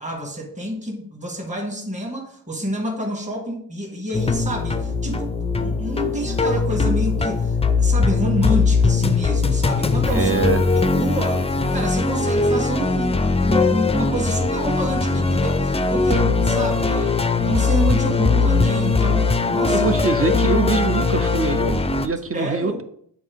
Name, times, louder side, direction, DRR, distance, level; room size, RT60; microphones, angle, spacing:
voice 1, 0.0-10.3 10.8-19.9 22.3-22.8, right 1 dB, 15° right, 0 dB, 1.6 m, -28 dB
sound 1, 4.1-22.1, left 4 dB, 15° left, 0.4 m, -20 dB
voice 2, 10.1-10.8 19.7-22.8, right 4 dB, 35° right, 10 dB, 0.6 m, -23 dB
7.7 x 4.1 x 3.5 m, 0.65 s
cardioid pair, 70°, 41 cm